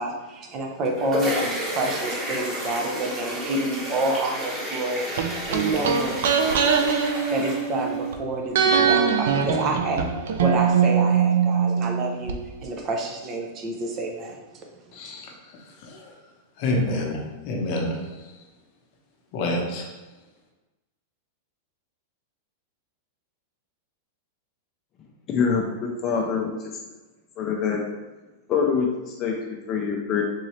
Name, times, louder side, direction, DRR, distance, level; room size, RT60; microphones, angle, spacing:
voice 1, 0.0-6.7 7.3-10.1 10.4-14.4 15.0-15.1, right 2 dB, 35° right, 2 dB, 0.6 m, -29 dB
sound 1, 0.6-8.1, equal, 15° right, 1.2 m, -32 dB
sound 2, 5.2-8.1 8.5-12.4 12.6-12.7, right 6 dB, 75° right, 0.4 m, -22 dB
voice 2, 14.9-15.3 15.8-16.0 16.6-18.0 19.3-19.8, left 1 dB, 50° left, 0 dB, 0.8 m, -27 dB
voice 3, 25.3-26.5 27.4-27.8 28.5-30.2, left 6 dB, 30° left, 0 dB, 0.5 m, -25 dB
3.9 x 2.7 x 3.1 m, 1.2 s
supercardioid pair, 140°, 0 cm